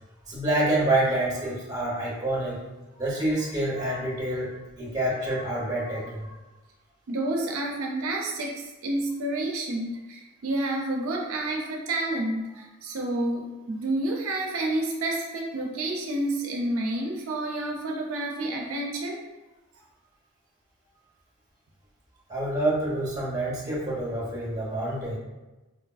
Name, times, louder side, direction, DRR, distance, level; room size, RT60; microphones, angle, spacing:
voice 1, 0.3-2.6 2.9-6.3 22.3-25.2, right 1 dB, 15° right, -6 dB, 0.9 m, -27 dB
voice 2, 7.1-19.2, right 1 dB, 75° right, 0 dB, 0.5 m, -29 dB
3.9 x 2.4 x 2.3 m, 1.1 s
head